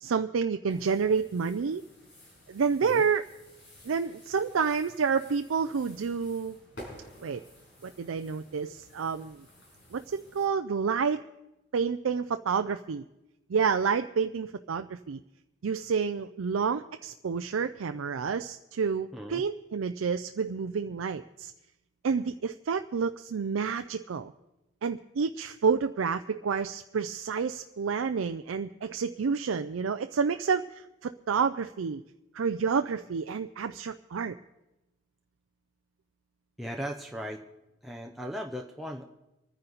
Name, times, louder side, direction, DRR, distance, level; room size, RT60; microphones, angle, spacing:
voice 1, 0.0-1.8 2.5-3.2 3.8-6.6 7.2-7.4 7.8-9.4 9.9-11.2 11.7-13.0 13.5-15.2 15.6-21.5 22.0-24.3 24.8-32.0 32.3-34.4, right 5 dB, 90° right, 8 dB, 0.4 m, -29 dB
sound 1, 0.7-10.5, equal, 85° left, 6.4 m, -52 dB
voice 2, 36.6-37.4 37.8-39.0, equal, ahead, 0 dB, 0.6 m, -37 dB
24.5 x 9.9 x 4.0 m, 0.97 s
head